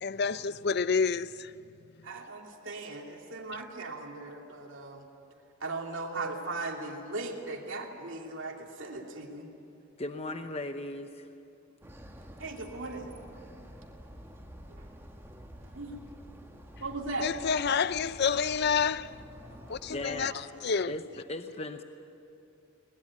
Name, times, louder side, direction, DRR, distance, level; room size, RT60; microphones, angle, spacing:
voice 1, 0.0-1.5 17.2-19.1 19.7-20.3 20.6-20.9, left 5 dB, 50° left, 0.5 m, -28 dB
voice 2, 2.0-5.0 5.6-9.5 12.4-13.1 14.7-14.9 15.7-15.9 16.8-17.3 17.8-17.9, right 3 dB, 60° right, 2.9 m, -38 dB
voice 3, 10.0-11.3 19.9-20.3 20.9-21.8, left 2 dB, 30° left, 0.8 m, -37 dB
sound 1, 11.8-20.3, equal, 10° right, 1.6 m, -49 dB
22.0 x 20.5 x 9.9 m
head